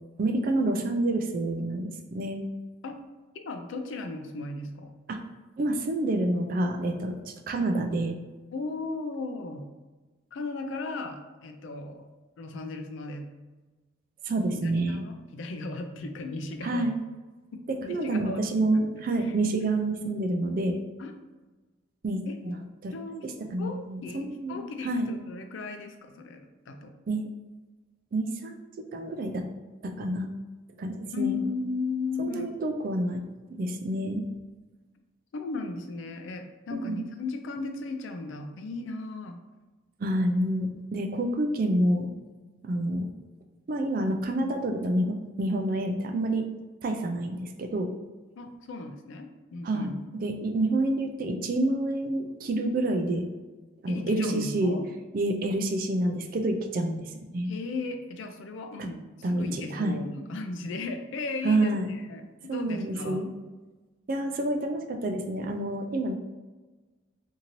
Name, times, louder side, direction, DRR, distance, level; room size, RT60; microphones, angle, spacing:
voice 1, 0.2-2.4 5.1-5.2 5.6-7.1 7.5-8.2 14.3-15.0 16.6-17.0 17.9-20.8 22.0-22.6 22.8-22.9 23.2-25.1 27.1-27.2 28.1-29.4 29.8-30.3 30.8-31.4 32.2-33.2 33.5-34.2 36.7-37.0 40.0-42.1 42.6-43.1 43.7-46.5 46.8-47.9 49.6-53.3 53.8-54.7 55.1-57.5 59.2-60.0 61.4-61.9 62.5-63.3 64.1-66.1, right 1 dB, 45° right, 4 dB, 0.3 m, -28 dB
voice 2, 3.3-4.9 8.5-9.7 10.3-12.1 12.4-13.3 14.5-16.9 17.5-18.6 19.2-19.4 21.0-21.1 22.3-22.5 22.9-23.3 23.6-26.9 31.1-32.6 35.3-39.4 48.4-49.9 53.9-54.9 57.5-63.3, left 3 dB, 75° left, 6 dB, 0.4 m, -36 dB
2.7 x 2.6 x 2.9 m, 1.2 s
head